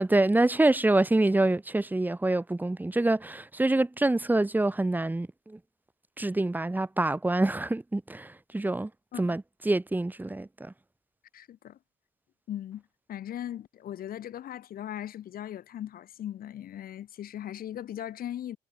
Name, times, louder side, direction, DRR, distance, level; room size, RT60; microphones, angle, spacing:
voice 1, 0.0-5.6 6.2-8.9 9.2-10.7, right 2 dB, 10° right, 3.4 m, -26 dB
voice 2, 11.3-11.8 12.5-12.8 13.1-18.6, left 11 dB, 60° left, 7.0 m, -38 dB
cardioid pair, 110°, 17 cm